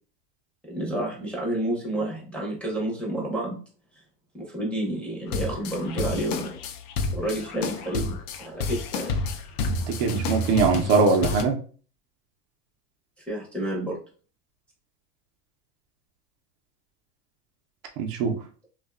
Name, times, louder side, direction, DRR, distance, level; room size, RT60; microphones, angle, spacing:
voice 1, 0.7-3.6 3.9-4.0 4.3-6.5 7.1-9.1 13.3-14.0, right 1 dB, 5° left, -5 dB, 0.6 m, -30 dB
sound 1, 5.3-11.4, left 3 dB, 65° left, 0.5 m, -30 dB
voice 2, 10.0-11.6 18.0-18.4, right 4 dB, 55° right, 1 dB, 0.6 m, -21 dB
2.5 x 2.3 x 2.3 m, 0.41 s
supercardioid pair, 120°, 47 cm